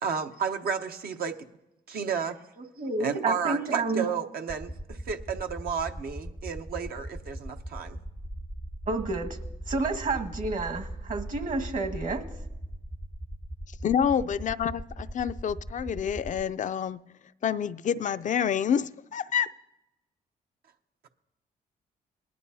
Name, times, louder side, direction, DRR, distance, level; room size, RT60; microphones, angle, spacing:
voice 1, 0.0-1.4 1.9-2.4 3.0-8.0, right 6 dB, 70° right, 0.9 m, -32 dB
voice 2, 2.8-4.0 8.9-9.4 9.7-12.2, right 3 dB, 55° right, 1.6 m, -30 dB
sound 1, 4.5-16.4, right 1 dB, ahead, 0.5 m, -39 dB
voice 3, 13.8-17.0 17.4-19.5, left 8 dB, 50° left, 0.4 m, -28 dB
19.5 x 11.5 x 2.7 m
cardioid pair, 75°, 16 cm